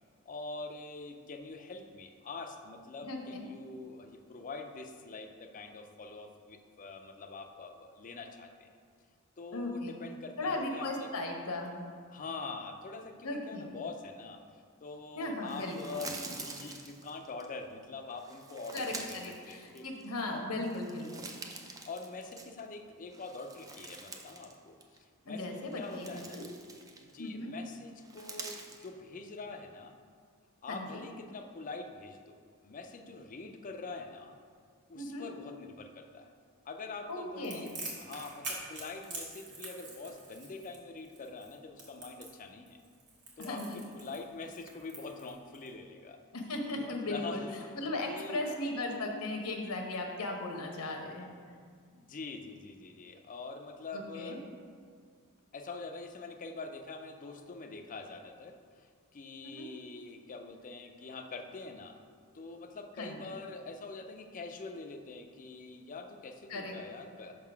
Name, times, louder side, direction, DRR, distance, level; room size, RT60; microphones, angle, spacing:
voice 1, 0.3-8.7 9.4-11.1 12.1-14.4 14.8-19.9 20.3-20.4 21.8-26.4 27.0-30.0 30.6-34.4 34.9-36.3 36.7-42.8 43.4-46.2 46.7-47.7 48.1-48.5 51.9-54.4 55.5-62.0 62.3-67.3, left 3 dB, 35° left, 5 dB, 0.5 m, -44 dB
voice 2, 3.0-3.5 9.5-10.0 10.4-11.8 13.2-13.7 15.2-15.9 18.7-18.9 19.5-21.3 25.3-26.4 27.2-27.5 30.7-31.0 34.9-35.2 37.1-37.7 43.4-43.8 46.3-47.4 47.7-51.3 53.9-54.4 59.4-59.7 63.0-63.2 66.5-66.7, left 2 dB, 80° left, 2 dB, 0.9 m, -37 dB
sound 1, 15.4-17.5 18.2-20.2 20.6-22.7 23.1-24.5 24.8-25.0 25.6-27.3 28.0-28.9, right 3 dB, 15° right, 0.4 m, -46 dB
Crackle, 37.4-45.7, right 3 dB, 55° right, 1.4 m, -45 dB
5.4 x 3.8 x 5.7 m, 2.1 s
head